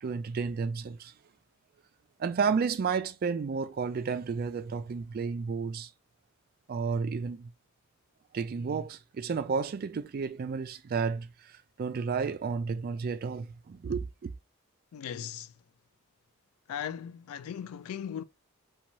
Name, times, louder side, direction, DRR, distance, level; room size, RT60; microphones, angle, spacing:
voice 1, 0.0-1.1 2.2-5.9 6.7-7.5 8.3-11.5 11.8-14.3, right 5 dB, 45° right, 0.3 m, -32 dB
voice 2, 14.9-15.5 16.7-18.2, left 8 dB, 80° left, 0.3 m, -38 dB
2.6 x 2.3 x 3.0 m
head